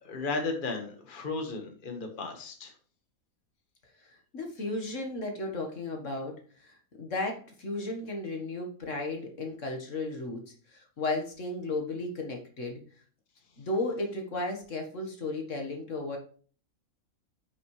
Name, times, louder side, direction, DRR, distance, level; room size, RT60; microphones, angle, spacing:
voice 1, 0.0-2.7, left 3 dB, 35° left, 4 dB, 1.5 m, -34 dB
voice 2, 4.0-12.8 13.6-16.2, left 2 dB, 60° left, 2 dB, 1.8 m, -34 dB
10.0 x 6.2 x 3.2 m, 0.43 s
omnidirectional pair, 1.5 m